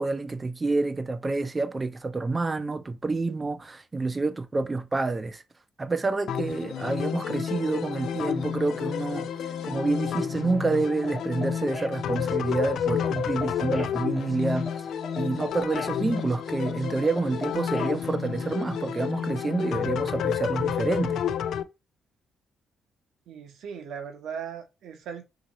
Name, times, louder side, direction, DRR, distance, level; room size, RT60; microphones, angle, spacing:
voice 1, 0.0-5.4 5.8-9.3 9.6-14.8 15.2-21.2, right 3 dB, 25° right, 0.5 m, -28 dB
sound 1, 6.3-21.6, left 8 dB, 70° left, 0.3 m, -30 dB
sound 2, 10.2-18.0, left 2 dB, 20° left, 0.9 m, -42 dB
voice 2, 23.3-25.2, right 7 dB, 75° right, 0.9 m, -38 dB
2.9 x 2.8 x 4.0 m
cardioid pair, 90°, 0 cm